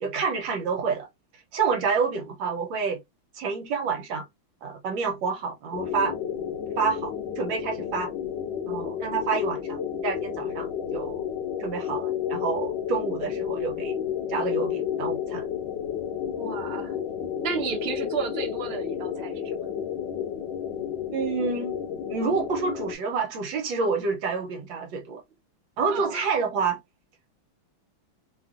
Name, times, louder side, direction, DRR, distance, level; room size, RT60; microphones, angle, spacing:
voice 1, 0.0-1.1 1.5-3.0 3.3-4.3 4.6-6.1 6.8-8.1 8.7-11.2 11.6-14.0 14.3-15.5 21.1-21.8 22.1-25.2 25.8-26.8, right 5 dB, 70° right, 1.4 m, -28 dB
sound 1, 5.7-23.0, left 9 dB, 75° left, 1.2 m, -31 dB
voice 2, 16.3-16.9 17.4-19.7 25.9-26.2, right 5 dB, 55° right, 0.6 m, -33 dB
3.2 x 2.4 x 2.4 m
omnidirectional pair, 2.3 m